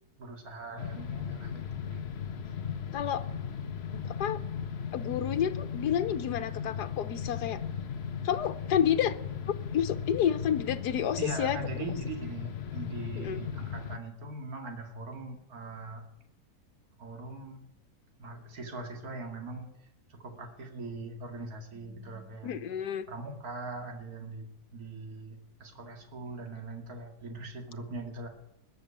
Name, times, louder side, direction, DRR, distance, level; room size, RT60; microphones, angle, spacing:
voice 1, 0.2-1.6 1.9-2.0 11.2-16.1 17.0-17.7 18.2-19.7 20.1-22.7 23.1-28.3, right 2 dB, 65° right, 3 dB, 2.7 m, -41 dB
sound 1, 0.8-14.0, left 7 dB, 45° left, 1.0 m, -37 dB
voice 2, 2.9-3.2 4.0-4.4 4.9-7.6 8.2-9.2 9.7-11.6 13.1-13.4 22.4-23.1, left 9 dB, 85° left, 9 dB, 1.5 m, -29 dB
20.5 x 6.9 x 9.9 m, 0.83 s
omnidirectional pair, 1.7 m